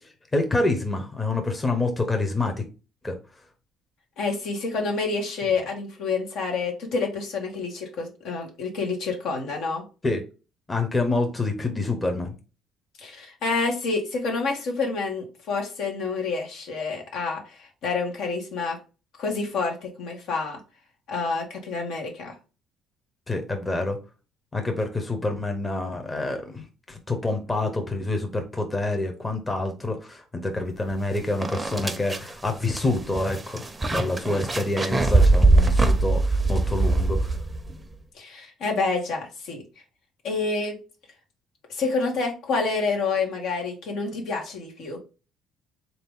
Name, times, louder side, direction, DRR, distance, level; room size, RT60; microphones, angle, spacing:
voice 1, 0.0-2.6 3.0-3.2 10.0-10.2 10.7-12.3 23.3-24.0 24.5-33.6 33.9-37.3, left 2 dB, 20° left, 5 dB, 0.8 m, -27 dB
voice 2, 4.2-9.8 13.0-17.4 17.8-18.8 19.2-20.6 21.1-22.4 38.1-39.6 40.2-40.8 41.7-45.0, left 4 dB, 75° left, 2 dB, 1.3 m, -28 dB
sound 1, 30.9-31.0 31.4-37.8, right 2 dB, 15° right, 0.6 m, -22 dB
3.7 x 2.8 x 3.6 m, 0.32 s
supercardioid pair, 85°, 0 cm